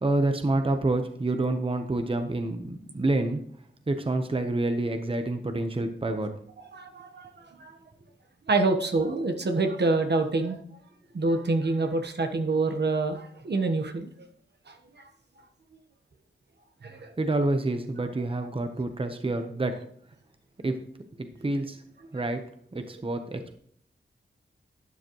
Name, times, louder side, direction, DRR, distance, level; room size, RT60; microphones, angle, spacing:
voice 1, 0.0-3.4 3.9-6.3 17.2-19.8 20.6-20.8 21.2-21.8 22.1-22.4 22.7-23.5, right 2 dB, 25° right, 6 dB, 1.0 m, -28 dB
voice 2, 6.7-7.7 8.5-10.6 11.1-14.3 14.7-15.0 16.8-17.1, right 3 dB, 60° right, 5 dB, 1.3 m, -27 dB
12.0 x 9.6 x 3.1 m, 0.62 s
wide cardioid pair, 90°, 20 cm